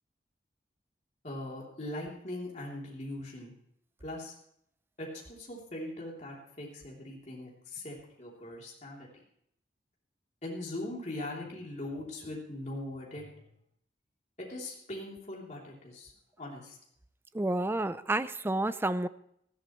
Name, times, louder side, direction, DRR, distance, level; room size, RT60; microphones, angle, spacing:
voice 1, 1.2-3.5 4.0-4.3 5.0-9.2 10.4-13.3 14.4-16.1 16.4-16.8, left 1 dB, 40° left, -3 dB, 3.2 m, -41 dB
voice 2, 17.3-19.1, right 2 dB, 15° right, 13 dB, 0.4 m, -30 dB
19.0 x 13.5 x 3.1 m, 0.71 s
head